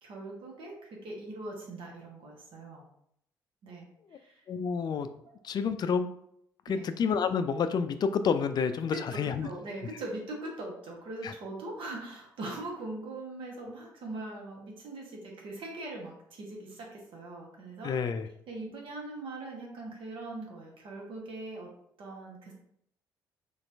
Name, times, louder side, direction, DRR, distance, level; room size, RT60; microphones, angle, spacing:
voice 1, 0.0-2.8 3.6-4.4 6.7-6.9 8.9-17.9 18.5-21.7 22.0-22.5, right 2 dB, 55° right, -1 dB, 1.1 m, -41 dB
voice 2, 4.5-5.1 5.4-6.1 6.7-9.5 9.8-9.9 11.2-11.3 17.8-18.3, left 6 dB, 40° left, 10 dB, 0.4 m, -29 dB
4.2 x 3.1 x 2.6 m, 0.71 s
figure-of-eight pair, 45°, 10 cm